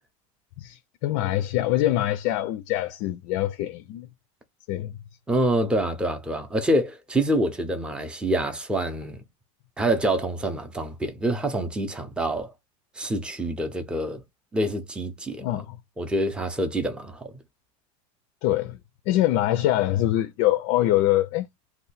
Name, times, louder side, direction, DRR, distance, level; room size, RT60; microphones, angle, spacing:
voice 1, 0.6-4.1 4.7-4.9 15.4-15.8 18.4-18.8 19.1-21.5, left 14 dB, 55° left, 0.4 m, -24 dB
voice 2, 5.3-9.2 9.8-12.5 13.0-14.2 14.5-15.6 16.0-17.4, right 1 dB, 5° right, 0.6 m, -26 dB
2.7 x 2.2 x 4.0 m
supercardioid pair, 130°, 17 cm